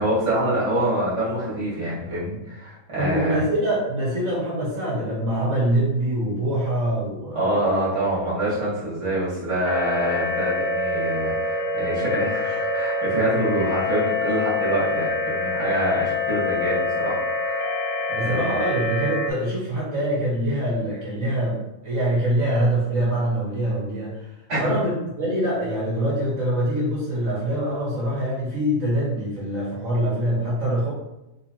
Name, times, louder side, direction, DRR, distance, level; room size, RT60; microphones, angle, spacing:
voice 1, 0.0-3.4 7.3-17.7 18.1-18.5 24.5-24.7, right 1 dB, 20° right, -10 dB, 1.6 m, -26 dB
voice 2, 3.0-7.8 18.1-24.3 24.6-30.9, right 1 dB, 55° right, -7 dB, 1.8 m, -24 dB
sound 1, 9.7-19.3, left 2 dB, 65° left, 0.8 m, -25 dB
4.3 x 3.9 x 2.8 m, 0.95 s
omnidirectional pair, 1.7 m